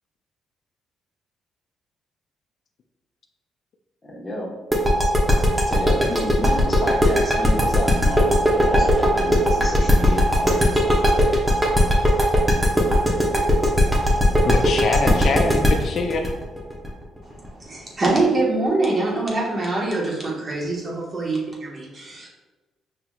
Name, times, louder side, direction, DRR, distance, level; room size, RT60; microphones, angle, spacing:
voice 1, 4.0-4.5 5.6-11.2, left 1 dB, 20° left, -5 dB, 1.2 m, -30 dB
sound 1, 4.7-17.5, left 1 dB, 10° right, 0.9 m, -17 dB
voice 2, 14.4-16.3, left 4 dB, 60° left, 4 dB, 0.4 m, -24 dB
voice 3, 17.2-22.3, right 2 dB, 35° right, -4 dB, 1.3 m, -24 dB
5.5 x 2.8 x 2.3 m, 1.2 s
cardioid pair, 90°, 0 cm